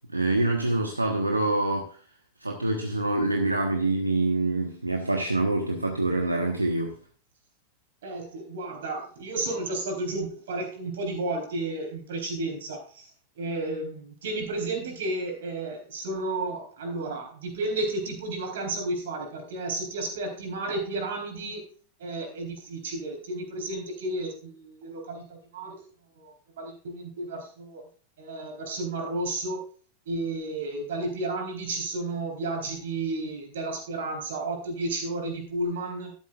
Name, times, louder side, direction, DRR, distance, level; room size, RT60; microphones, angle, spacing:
voice 1, 0.1-2.0 2.4-7.0, right 2 dB, 85° right, 1.2 m, -26 dB
voice 2, 8.0-13.1 13.4-21.6 22.0-25.7 26.2-27.8 28.2-29.6 30.1-36.2, right 2 dB, 60° right, 4.0 m, -32 dB
12.5 x 11.5 x 2.5 m
figure-of-eight pair, 90°, 0 cm